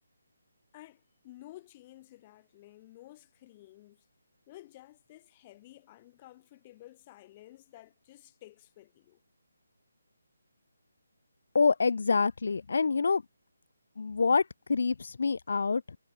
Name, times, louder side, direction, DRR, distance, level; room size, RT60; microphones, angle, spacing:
voice 1, 0.7-4.0 4.5-9.2, left 16 dB, 25° left, 4.6 m, -53 dB
voice 2, 11.5-13.2 14.0-14.4 14.7-16.0, left 4 dB, 65° left, 0.7 m, -26 dB
figure-of-eight pair, 160°, 0 cm